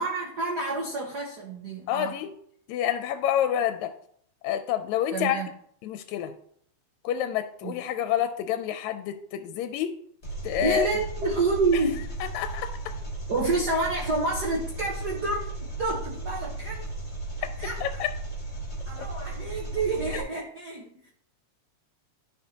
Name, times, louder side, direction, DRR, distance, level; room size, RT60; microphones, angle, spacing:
voice 1, 0.0-2.1 5.1-5.5 7.6-7.7 10.6-12.0 13.3-16.8 17.4-18.0 18.9-21.1, right 3 dB, 70° right, -1 dB, 0.9 m, -29 dB
voice 2, 1.9-2.3 2.7-3.9 4.4-5.4 5.8-6.3 7.0-10.0 10.4-10.9 11.7-11.8 12.3-13.0 17.8-18.1 19.0-19.1, left 10 dB, 85° left, 9 dB, 1.9 m, -28 dB
Engine, 10.2-20.2, right 2 dB, 20° left, 1.5 m, -35 dB
13.5 x 4.7 x 2.8 m, 0.65 s
omnidirectional pair, 3.3 m